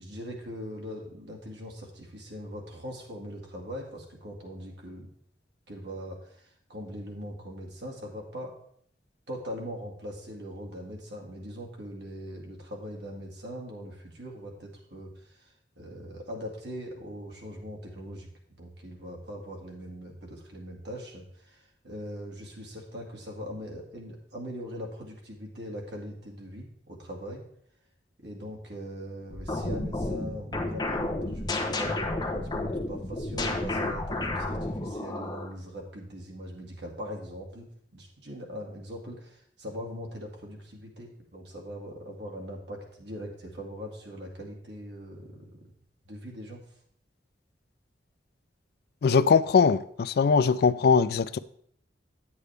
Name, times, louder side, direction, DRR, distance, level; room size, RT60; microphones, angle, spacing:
voice 1, 0.0-5.1 5.7-8.5 9.3-18.3 18.6-27.4 28.2-45.6 46.0-46.6, equal, 75° right, 2.2 m, -41 dB
sound 1, 29.3-35.5, left 2 dB, 25° left, 1.0 m, -31 dB
voice 2, 49.0-51.4, left 5 dB, 60° left, 0.4 m, -21 dB
9.3 x 8.4 x 3.4 m
head